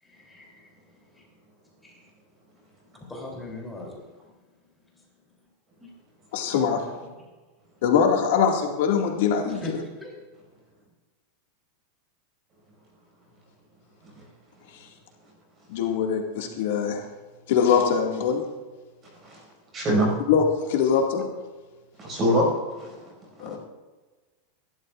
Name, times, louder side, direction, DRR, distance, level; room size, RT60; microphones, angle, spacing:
voice 1, 0.0-0.7 1.1-1.2 1.8-2.1 2.9-4.0 5.8-5.9 9.5-9.7 10.0-10.1, left 2 dB, 5° left, 3.3 m, -40 dB
voice 2, 6.3-7.0 7.8-9.8 15.7-17.0 17.5-18.4 20.3-21.2 23.4-23.6, left 7 dB, 65° left, 2.1 m, -23 dB
voice 3, 19.7-20.1 22.0-22.5 22.8-23.1 23.4-23.6, equal, 20° right, 5.7 m, -24 dB
27.0 x 12.5 x 2.5 m
supercardioid pair, 165°, 0 cm